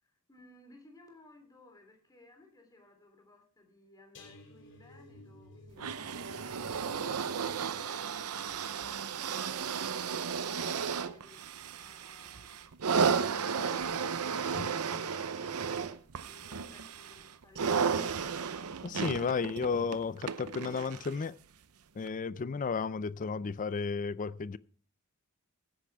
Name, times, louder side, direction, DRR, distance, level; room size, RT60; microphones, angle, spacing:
voice 1, 0.0-14.1 14.4-15.7 16.2-17.9, left 2 dB, 15° left, 3.4 m, -59 dB
sound 1, 4.1-11.2 11.6-11.9 12.2-12.3, left 2 dB, 55° left, 3.1 m, -57 dB
sound 2, 5.8-21.2 22.1-22.2, right 6 dB, 80° right, 0.7 m, -34 dB
voice 2, 18.8-21.3 22.0-24.6, left 5 dB, 35° left, 0.4 m, -33 dB
16.0 x 10.0 x 3.5 m
head